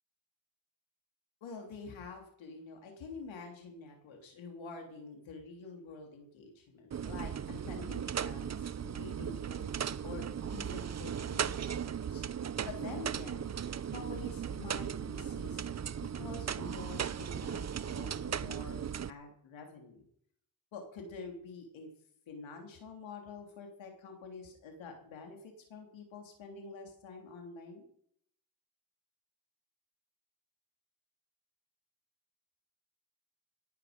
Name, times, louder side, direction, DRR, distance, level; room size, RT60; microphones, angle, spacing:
voice 1, 1.4-12.2 12.6-13.5 13.9-15.6 16.0-18.8 19.1-20.1 20.7-21.9 22.3-27.9, left 4 dB, 90° left, 3 dB, 3.2 m, -47 dB
sound 1, 6.9-19.1, right 8 dB, 35° right, 0.6 m, -37 dB
17.5 x 10.0 x 5.2 m, 0.66 s
cardioid pair, 65°, 45 cm